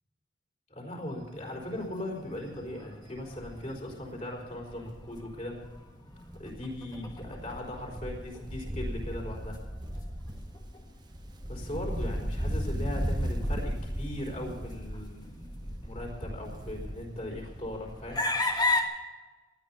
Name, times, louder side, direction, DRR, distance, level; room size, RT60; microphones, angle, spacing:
voice 1, 0.7-5.6 6.4-9.6 11.5-18.2, left 1 dB, 40° left, 0 dB, 4.5 m, -39 dB
Wind, 1.2-1.5 1.9-2.0 2.3-5.8 6.1-18.3 18.6-18.7, equal, 25° right, 1.2 m, -37 dB
sound 1, 1.4-18.8, left 2 dB, 25° left, 1.5 m, -39 dB
19.0 x 12.0 x 5.6 m, 1.3 s
head